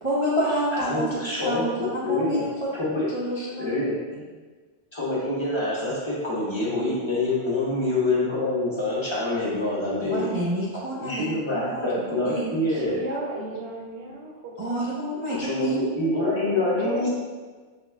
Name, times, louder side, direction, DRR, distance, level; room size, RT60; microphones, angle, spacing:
voice 1, 0.0-1.0 1.4-2.5 3.0-3.7 4.1-4.2 10.0-11.2 11.5-11.9 12.2-12.4 14.6-15.8, equal, 30° right, -9 dB, 0.7 m, -28 dB
voice 2, 0.7-1.6 2.0-2.4 2.8-3.1 3.6-3.9 4.9-10.3 11.0-13.0 15.3-17.1, left 2 dB, 25° left, -8 dB, 1.1 m, -26 dB
voice 3, 12.7-14.9 15.3-15.4 16.0-17.1, right 2 dB, 75° right, -2 dB, 1.0 m, -35 dB
5.6 x 4.1 x 2.3 m, 1.4 s
omnidirectional pair, 1.2 m